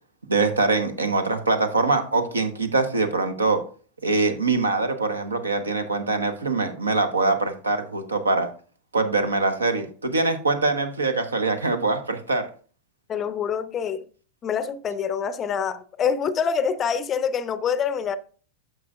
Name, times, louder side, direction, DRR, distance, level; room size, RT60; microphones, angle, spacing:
voice 1, 0.3-3.6 4.0-8.5 8.9-12.5, right 3 dB, 75° right, 0.9 m, -23 dB
voice 2, 13.1-14.1 14.4-18.2, left 7 dB, 25° left, 0.5 m, -26 dB
9.1 x 6.7 x 2.4 m
figure-of-eight pair, 90°, 0 cm